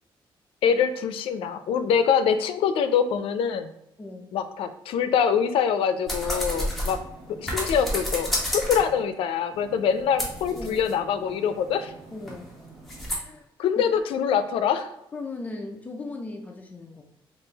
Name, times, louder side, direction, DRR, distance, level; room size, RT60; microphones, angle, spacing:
voice 1, 0.6-3.7 4.3-7.0 7.4-11.9 13.6-14.9, left 7 dB, 80° left, 10 dB, 0.4 m, -24 dB
voice 2, 4.0-4.3 10.5-10.8 12.1-12.5 13.2-13.5 13.8-13.9 15.1-17.0, left 3 dB, 15° left, 2 dB, 0.4 m, -37 dB
sound 1, 6.1-9.0 9.5-13.2, equal, ahead, 0.9 m, -32 dB
3.8 x 2.4 x 3.9 m, 0.82 s
cardioid pair, 175°, 9 cm